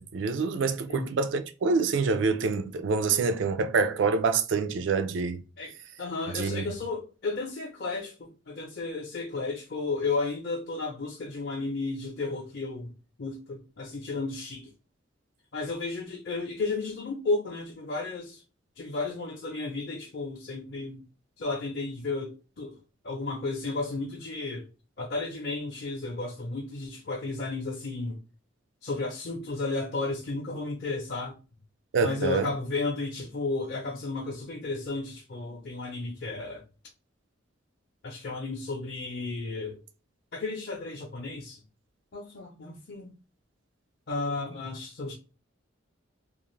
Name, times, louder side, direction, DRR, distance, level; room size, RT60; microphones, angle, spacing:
voice 1, 0.0-5.4 6.3-6.6 31.9-32.5, right 4 dB, 70° right, 0.4 m, -26 dB
voice 2, 5.6-12.9 13.2-14.7 15.5-18.4 18.8-21.0 21.4-22.8 23.0-24.7 25.0-28.2 28.8-31.4 32.0-36.6 38.0-39.8 40.3-41.6 42.1-43.1 44.1-45.1, left 3 dB, 55° left, 0.6 m, -33 dB
2.4 x 2.4 x 3.1 m
head